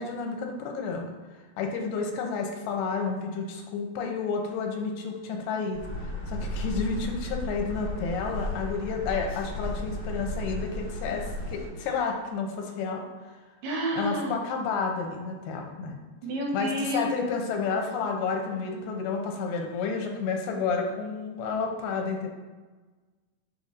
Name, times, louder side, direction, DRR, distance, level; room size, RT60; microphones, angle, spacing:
voice 1, 0.0-13.4 14.0-16.0 16.5-22.3, left 5 dB, 85° left, 2 dB, 2.5 m, -31 dB
sound 1, 5.7-11.7, left 1 dB, 30° left, 1.2 m, -34 dB
voice 2, 13.6-14.4 16.2-17.1, right 1 dB, 80° right, -2 dB, 3.1 m, -29 dB
7.3 x 6.9 x 2.6 m, 1.3 s
omnidirectional pair, 4.7 m